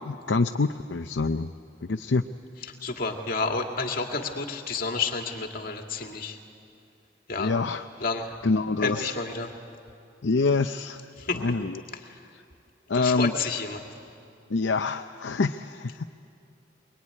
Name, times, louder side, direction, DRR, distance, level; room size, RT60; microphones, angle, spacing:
voice 1, 0.0-1.5 1.8-2.2 7.4-7.9 8.4-9.1 10.2-11.1 11.3-11.8 12.9-13.3 14.5-16.0, left 3 dB, 70° left, 7 dB, 0.6 m, -26 dB
voice 2, 2.8-6.4 7.3-7.5 8.0-8.4 8.8-9.5 11.2-11.4 12.0-12.2 12.9-13.8, left 4 dB, 50° left, 3 dB, 2.3 m, -30 dB
23.5 x 22.5 x 9.8 m, 2.5 s
head